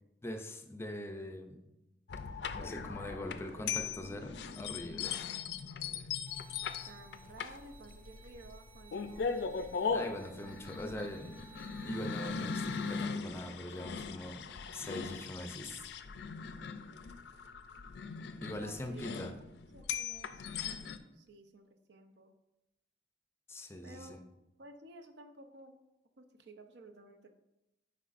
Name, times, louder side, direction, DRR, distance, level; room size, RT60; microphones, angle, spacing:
voice 1, 0.2-1.7 2.5-5.2 9.9-15.9 18.4-19.4 23.5-24.2, left 1 dB, 15° left, 6 dB, 0.4 m, -42 dB
sound 1, 2.1-21.0, left 6 dB, 70° left, 0.4 m, -39 dB
sound 2, 6.3-13.1, right 3 dB, 30° right, 1.0 m, -58 dB
voice 2, 6.9-9.4 18.6-19.2 19.7-20.5 21.1-22.3 23.8-24.2 24.6-25.8 26.2-27.3, right 2 dB, 75° right, 6 dB, 0.6 m, -54 dB
7.9 x 5.3 x 2.5 m, 0.94 s
head